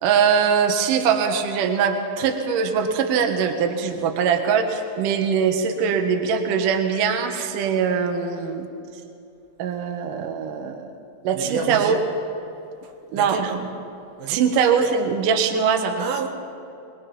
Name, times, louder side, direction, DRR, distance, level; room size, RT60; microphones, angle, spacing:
voice 1, 0.0-8.7 9.6-10.9 11.2-12.0 13.1-13.6 14.3-16.0, right 6 dB, 65° right, 5 dB, 2.4 m, -22 dB
voice 2, 11.4-12.0 13.1-13.7 14.2-14.4 16.0-16.3, right 6 dB, 90° right, 3 dB, 4.1 m, -29 dB
23.0 x 21.0 x 5.5 m, 2.8 s
omnidirectional pair, 5.4 m